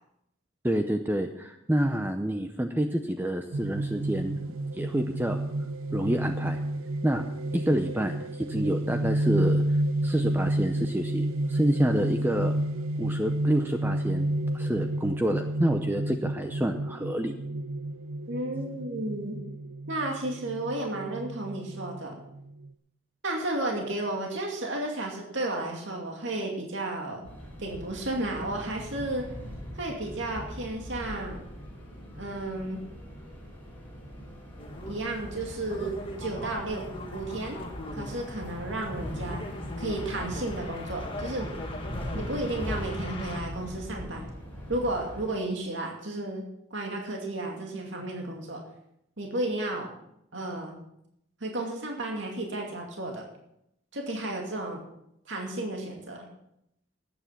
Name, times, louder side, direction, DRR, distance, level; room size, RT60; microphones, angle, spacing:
voice 1, 0.6-4.4 4.7-5.4 5.9-6.6 7.0-7.2 7.5-9.6 10.0-12.5 13.0-14.3 14.5-17.3, right 1 dB, 10° right, 6 dB, 0.6 m, -28 dB
sound 1, 3.5-22.7, right 1 dB, 90° right, 0.6 m, -30 dB
voice 2, 18.3-19.4 19.9-22.2 23.2-27.3 27.6-29.3 29.7-31.5 32.2-32.8 34.9-37.6 37.9-39.4 39.8-41.5 42.1-44.3 44.7-46.4 46.7-48.6 49.2-49.9 50.3-50.8 51.4-53.3 53.9-54.8 55.3-56.3, right 2 dB, 60° right, 0 dB, 2.4 m, -33 dB
sound 2, 27.2-45.3, equal, 10° left, 4.7 m, -41 dB
sound 3, 34.6-43.4, left 1 dB, 25° left, 1.7 m, -39 dB
13.5 x 9.2 x 5.9 m, 0.79 s
head